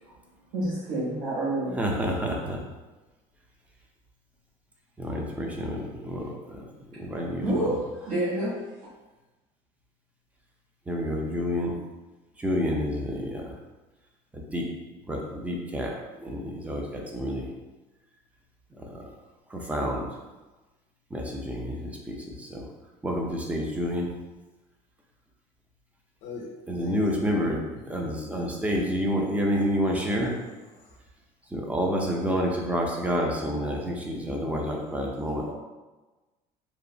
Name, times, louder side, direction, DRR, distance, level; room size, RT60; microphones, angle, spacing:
voice 1, 0.5-1.8 7.4-8.5, right 1 dB, 70° right, -9 dB, 0.7 m, -28 dB
voice 2, 1.7-2.6 5.0-6.6 7.0-7.7 10.9-11.8 12.4-13.6 14.3-14.7 15.1-15.9 16.2-17.5 18.8-19.0 19.5-20.1 21.1-22.7 23.0-24.1 26.7-27.6 27.9-30.4 31.5-35.5, equal, 10° right, 0 dB, 0.4 m, -29 dB
voice 3, 26.8-27.6 30.8-31.0 35.4-35.5, left 4 dB, 70° left, -3 dB, 0.6 m, -39 dB
2.8 x 2.0 x 2.6 m, 1.2 s
cardioid pair, 125°, 14 cm